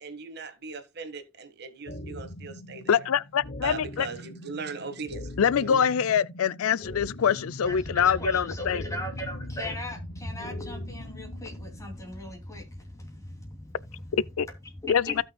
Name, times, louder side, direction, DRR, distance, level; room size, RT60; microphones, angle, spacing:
voice 1, 0.0-3.0 3.6-5.9, right 4 dB, 50° right, 1.6 m, -39 dB
sound 1, 1.9-11.8, left 1 dB, 55° left, 1.0 m, -42 dB
voice 2, 2.9-4.1 5.4-8.8 14.1-14.5 14.9-15.2, left 8 dB, 85° left, 0.4 m, -24 dB
voice 3, 7.6-14.0 14.6-15.2, equal, 15° left, 2.7 m, -37 dB
16.0 x 6.1 x 2.2 m
head